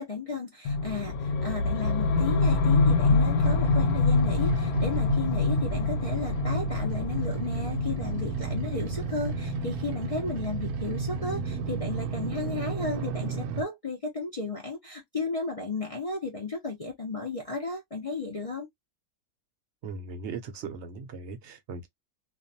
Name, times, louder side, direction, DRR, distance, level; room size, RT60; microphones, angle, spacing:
voice 1, 0.0-18.7, left 3 dB, 65° left, 0.3 m, -34 dB
sound 1, 0.6-10.7, left 3 dB, 90° left, 1.1 m, -26 dB
sound 2, 3.4-13.6, right 5 dB, 85° right, 1.1 m, -33 dB
voice 2, 19.8-21.9, right 4 dB, 60° right, 0.8 m, -38 dB
2.5 x 2.2 x 2.5 m
omnidirectional pair, 1.5 m